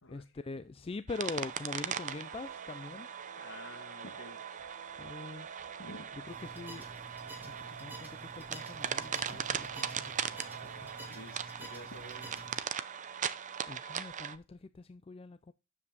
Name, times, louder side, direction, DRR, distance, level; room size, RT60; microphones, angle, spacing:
voice 1, 0.1-3.1 5.0-5.6 6.1-6.9 7.4-10.2 10.6-10.9 13.7-15.5, left 3 dB, 25° left, 0.4 m, -43 dB
sound 1, 1.1-14.4, right 8 dB, 35° right, 0.6 m, -39 dB
Guitar, 1.6-11.1, right 6 dB, 90° right, 0.7 m, -52 dB
voice 2, 3.4-4.4 5.8-6.1 11.0-12.5, left 1 dB, 60° left, 2.4 m, -49 dB
sound 2, 6.3-12.6, right 2 dB, 10° right, 3.0 m, -49 dB
9.6 x 7.5 x 4.0 m
head